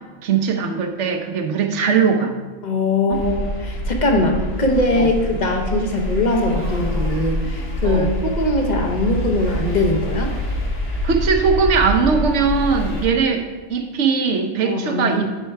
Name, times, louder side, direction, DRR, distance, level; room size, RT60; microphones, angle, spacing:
voice 1, 0.2-2.3 3.1-3.2 5.0-5.1 7.8-8.1 11.0-15.3, right 5 dB, 65° right, 6 dB, 1.1 m, -20 dB
voice 2, 2.6-10.3 14.6-15.3, left 2 dB, 40° left, 2 dB, 0.9 m, -21 dB
sound 1, 3.1-13.1, equal, 65° left, 2.0 m, -26 dB
11.0 x 4.5 x 4.5 m, 1.3 s
omnidirectional pair, 1.4 m